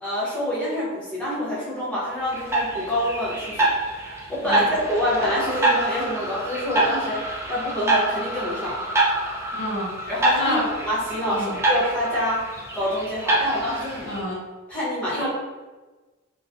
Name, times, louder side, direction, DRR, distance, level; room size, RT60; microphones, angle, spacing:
voice 1, 0.0-3.7 4.3-8.8 10.1-10.6 10.8-14.1 14.7-15.3, left 1 dB, 5° left, -9 dB, 1.0 m, -26 dB
sound 1, 2.3-14.2, right 2 dB, 15° right, 0.4 m, -26 dB
voice 2, 9.5-9.9 10.4-10.6 11.3-11.6 14.1-14.4 15.2-15.3, left 1 dB, 60° left, -6 dB, 0.7 m, -28 dB
3.8 x 2.3 x 2.6 m, 1.2 s
head